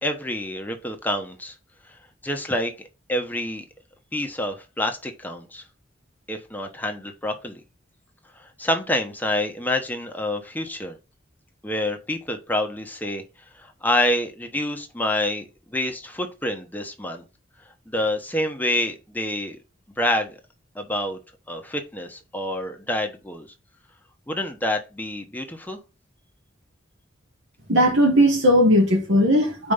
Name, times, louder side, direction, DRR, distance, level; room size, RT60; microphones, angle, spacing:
voice 1, 0.0-1.5 2.2-2.7 3.1-3.6 4.1-5.6 6.3-7.6 8.6-11.0 11.6-13.2 13.8-17.2 17.9-19.6 20.0-20.4 20.7-21.2 21.5-23.5 24.3-25.8, left 1 dB, 10° left, 1.0 m, -27 dB
voice 2, 27.7-29.7, equal, 85° right, 2.5 m, -17 dB
5.1 x 4.6 x 5.4 m
head